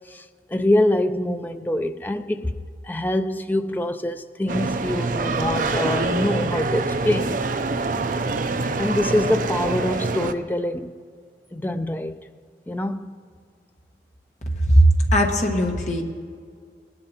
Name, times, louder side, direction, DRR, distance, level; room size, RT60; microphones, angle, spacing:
voice 1, 0.1-2.6 2.8-7.4 8.8-11.0 11.5-12.2 12.7-13.1, left 1 dB, 10° left, 0.4 m, -25 dB
sound 1, 4.5-10.3, right 3 dB, 50° right, 0.5 m, -25 dB
voice 2, 14.6-16.0, right 1 dB, 40° left, 1.4 m, -18 dB
19.0 x 11.0 x 2.9 m
head